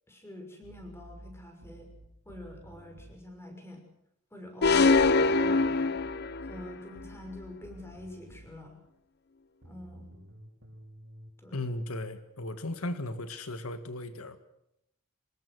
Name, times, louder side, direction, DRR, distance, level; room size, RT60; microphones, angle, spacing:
voice 1, 0.1-1.9 2.3-3.8 4.3-6.0 6.4-8.8 9.6-10.2 11.4-11.7, left 1 dB, 10° left, 4 dB, 6.3 m, -46 dB
sound 1, 0.6-3.2 4.9-8.6 9.6-11.3, right 1 dB, 60° right, 5.3 m, -51 dB
sound 2, 4.6-6.6, left 3 dB, 50° left, 0.9 m, -23 dB
voice 2, 11.5-14.4, left 1 dB, 85° left, 10 dB, 1.8 m, -36 dB
26.0 x 21.0 x 6.3 m, 0.79 s
head